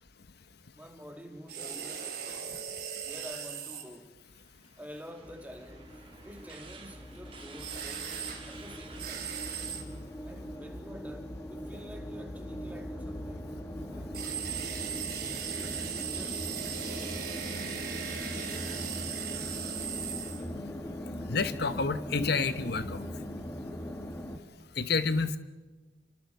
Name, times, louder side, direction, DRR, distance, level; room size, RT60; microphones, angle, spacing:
voice 1, 0.7-2.5 3.0-4.2 4.8-9.4 10.2-13.5 13.9-14.3 15.6-17.9, equal, 10° right, 2.2 m, -49 dB
sound 1, 1.5-3.8 7.6-8.4 9.0-9.8 14.1-20.4, right 8 dB, 55° right, 3.6 m, -38 dB
sound 2, 4.2-10.7, right 5 dB, 30° right, 2.5 m, -53 dB
sound 3, 5.2-24.4, equal, 15° left, 1.7 m, -40 dB
voice 2, 21.3-23.0 24.8-25.4, left 4 dB, 60° left, 1.1 m, -29 dB
29.5 x 23.5 x 4.6 m
head